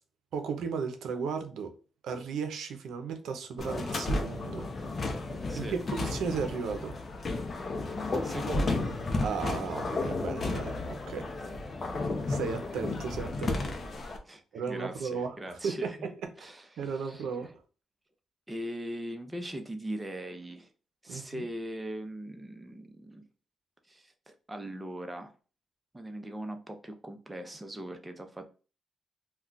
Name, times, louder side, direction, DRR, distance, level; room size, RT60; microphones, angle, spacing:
voice 1, 0.3-1.7 2.0-4.7 5.6-6.9 9.2-11.3 12.3-13.8 14.5-15.4 15.6-16.1 16.4-16.5 16.8-17.5 21.1-21.5, right 5 dB, 85° right, 0.5 m, -35 dB
sound 1, 3.6-14.2, left 2 dB, 40° left, 0.6 m, -33 dB
voice 2, 5.5-5.8 8.2-8.9 11.4-11.5 14.2-16.1 16.4-17.5 18.5-20.7 21.0-23.2 23.9-25.3 25.9-28.5, right 1 dB, 15° right, 0.6 m, -40 dB
2.3 x 2.2 x 3.8 m
cardioid pair, 80°, 0 cm